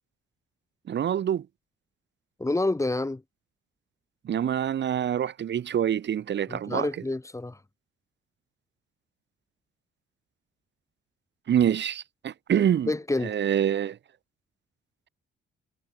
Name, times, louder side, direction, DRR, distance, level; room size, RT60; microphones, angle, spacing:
voice 1, 0.9-1.5 4.2-6.9 11.5-12.9 13.2-14.0, right 9 dB, 65° right, 7.6 m, -26 dB
voice 2, 2.4-3.2 6.5-7.6 12.9-13.4, left 2 dB, 15° left, 3.4 m, -28 dB
cardioid pair, 90°, 20 cm